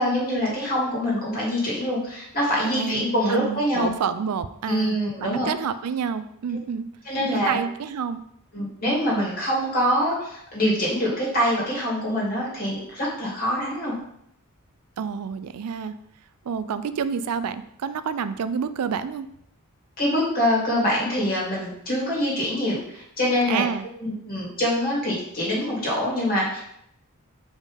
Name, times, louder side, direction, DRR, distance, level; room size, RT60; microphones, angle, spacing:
voice 1, 0.0-3.9 4.7-5.5 7.0-7.6 8.5-13.9 20.0-23.6 24.0-26.6, equal, 40° left, -5 dB, 2.6 m, -24 dB
voice 2, 2.6-6.9 7.3-8.2 15.0-15.9 16.4-19.3 23.5-23.9, right 6 dB, 85° right, 12 dB, 0.4 m, -29 dB
5.2 x 3.7 x 5.0 m, 0.73 s
head